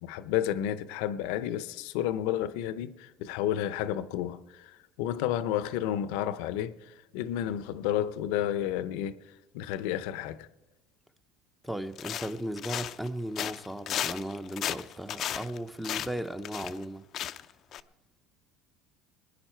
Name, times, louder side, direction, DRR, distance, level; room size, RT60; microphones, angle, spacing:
voice 1, 0.0-6.8 7.1-9.2 9.5-10.5, left 11 dB, 75° left, 0.7 m, -31 dB
voice 2, 11.6-17.0 17.3-17.4, right 1 dB, ahead, 0.7 m, -36 dB
sound 1, 12.0-13.1 13.4-16.8 17.1-17.5 17.7-17.8, left 10 dB, 45° left, 0.5 m, -34 dB
21.0 x 9.9 x 4.5 m
supercardioid pair, 120°, 0 cm